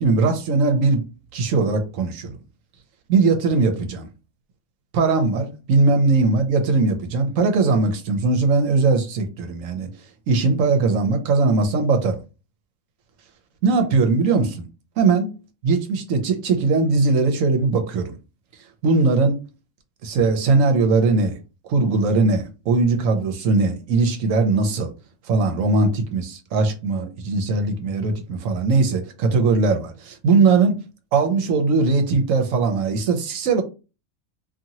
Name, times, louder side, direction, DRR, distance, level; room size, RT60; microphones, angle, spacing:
voice 1, 0.0-2.3 3.1-4.1 4.9-9.9 10.3-12.2 13.6-14.7 15.0-15.3 15.6-18.1 18.8-19.4 20.0-21.4 21.7-24.9 25.3-30.8 31.1-33.6, right 3 dB, 75° right, 1.0 m, -20 dB
2.7 x 2.6 x 2.9 m
omnidirectional pair, 1.4 m